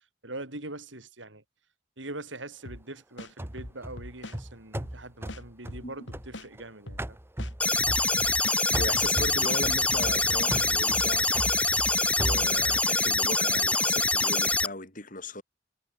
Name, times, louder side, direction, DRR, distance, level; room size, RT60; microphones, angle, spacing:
voice 1, 0.2-1.4 2.0-7.2, right 2 dB, 75° right, 4.8 m, -42 dB
sound 1, 2.7-2.8 3.2-4.4 4.8-4.9 5.3-6.5 6.9-7.0 7.4-8.6 9.0-9.2 9.5-10.7, left 1 dB, 70° left, 3.7 m, -42 dB
sound 2, 3.4-6.6 7.0-8.5 8.7-12.9, right 1 dB, 10° right, 1.1 m, -36 dB
sound 3, 7.6-14.7, left 2 dB, 5° left, 0.6 m, -25 dB
voice 2, 8.8-11.3 11.7-11.8 12.2-15.4, left 2 dB, 45° left, 7.7 m, -37 dB
head